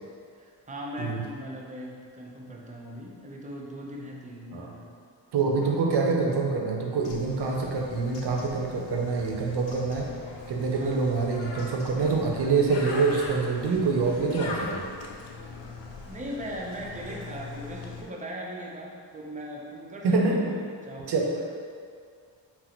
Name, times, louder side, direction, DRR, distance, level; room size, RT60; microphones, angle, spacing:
voice 1, 0.3-4.9 5.6-5.7 10.7-11.0 16.1-21.4, equal, 15° right, -2 dB, 0.5 m, -39 dB
voice 2, 5.3-10.1 10.5-14.9 20.0-20.4 21.1-21.3, right 4 dB, 60° right, -1 dB, 0.6 m, -26 dB
Bird, 7.0-18.0, left 3 dB, 70° left, 0.6 m, -40 dB
2.8 x 2.0 x 4.0 m, 2.2 s
cardioid pair, 60°, 46 cm